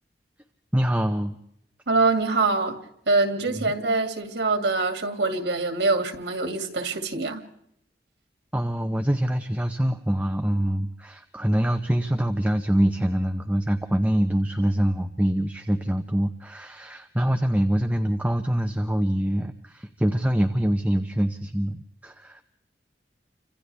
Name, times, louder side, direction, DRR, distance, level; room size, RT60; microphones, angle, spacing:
voice 1, 0.7-1.4 3.4-3.7 8.5-22.4, equal, 10° right, 0.8 m, -25 dB
voice 2, 1.9-2.8 3.1-7.4, right 3 dB, 90° right, 2.4 m, -24 dB
30.0 x 25.5 x 3.4 m
head